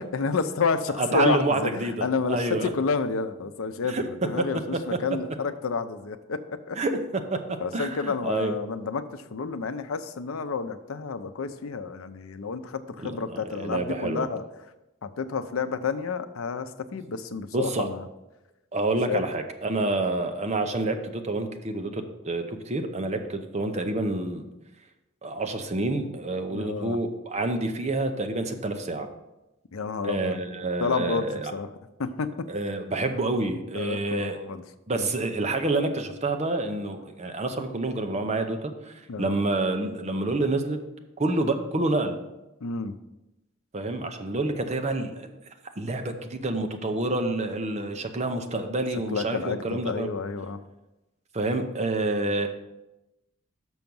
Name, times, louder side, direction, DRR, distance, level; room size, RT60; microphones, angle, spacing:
voice 1, 0.1-6.8 7.6-14.4 15.0-18.1 19.1-19.2 26.5-27.0 29.7-30.4 30.8-31.7 32.0-32.5 33.7-34.6 34.9-35.1 39.1-39.3 42.6-42.9 49.1-50.6, left 5 dB, 85° left, 11 dB, 0.5 m, -30 dB
voice 2, 1.0-2.7 3.8-4.0 4.4-4.5 4.9-5.0 6.7-7.4 7.7-8.6 13.0-14.3 17.5-17.9 18.7-24.4 25.2-29.1 30.0-31.5 32.5-34.4 34.9-40.8 41.2-42.2 43.7-45.3 45.8-50.1 51.3-52.5, right 2 dB, 35° right, 6 dB, 0.7 m, -28 dB
6.2 x 5.8 x 5.3 m, 0.97 s
head